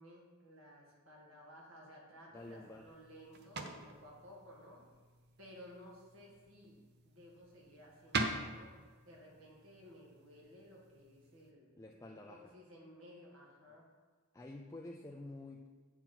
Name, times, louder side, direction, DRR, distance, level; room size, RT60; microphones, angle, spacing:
voice 1, 0.0-4.8 5.4-6.8 7.0-11.7 12.1-13.9, equal, 75° right, -2 dB, 2.1 m, -57 dB
voice 2, 2.3-2.9 11.8-12.5 14.3-15.7, left 2 dB, 15° left, 1 dB, 0.4 m, -49 dB
sound 1, 2.3-11.5, right 3 dB, 50° right, 0.7 m, -45 dB
8.1 x 5.9 x 4.4 m, 1.4 s
head